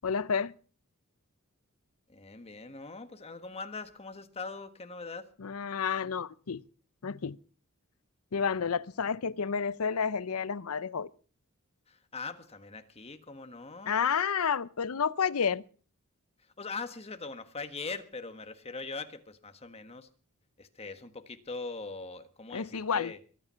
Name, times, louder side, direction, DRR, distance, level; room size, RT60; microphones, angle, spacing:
voice 1, 0.0-0.5 5.4-6.6 7.0-7.4 8.3-11.1 13.9-15.6 22.5-23.1, left 6 dB, 75° left, 0.6 m, -30 dB
voice 2, 2.1-5.3 11.9-13.9 16.6-20.1 20.6-23.2, left 3 dB, 30° left, 1.5 m, -41 dB
23.0 x 9.1 x 5.7 m
head